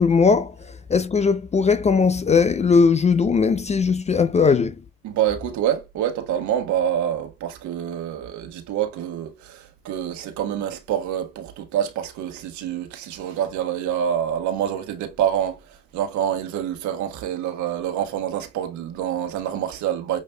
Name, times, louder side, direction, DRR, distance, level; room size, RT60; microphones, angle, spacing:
voice 1, 0.0-4.7, left 5 dB, 20° left, 0.4 m, -19 dB
voice 2, 5.0-20.2, right 10 dB, 65° right, 1.3 m, -26 dB
6.6 x 3.1 x 2.3 m
supercardioid pair, 75°, 31 cm